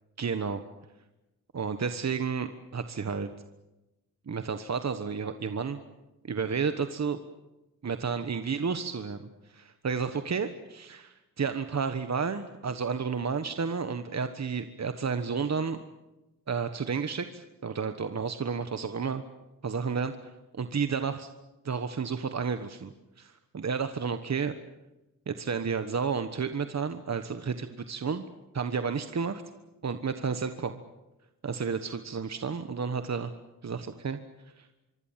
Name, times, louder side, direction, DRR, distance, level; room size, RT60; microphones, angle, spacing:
voice 1, 0.2-0.6 1.5-3.3 4.3-5.8 6.3-7.2 7.8-15.8 16.5-19.2 19.6-20.1 20.5-21.3 21.6-22.9 23.2-24.5 25.3-28.3 28.5-29.4 29.8-30.7 31.4-33.3 33.6-34.2 34.6-34.7, right 5 dB, 50° right, 9 dB, 1.3 m, -31 dB
25.0 x 24.5 x 7.5 m, 1.0 s
wide cardioid pair, 105°, 34 cm